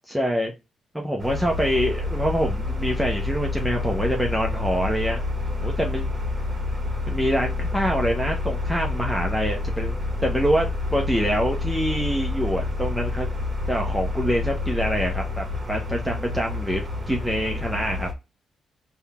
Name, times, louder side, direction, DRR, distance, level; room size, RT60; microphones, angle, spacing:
voice 1, 0.1-0.5 0.9-5.2 5.6-6.2 7.1-9.9 10.2-13.3 13.7-18.1, equal, 5° right, 1 dB, 0.8 m, -25 dB
sound 1, 1.2-18.1, left 2 dB, 25° right, 1.2 m, -28 dB
3.8 x 2.3 x 3.4 m, 0.26 s
cardioid pair, 70°, 0 cm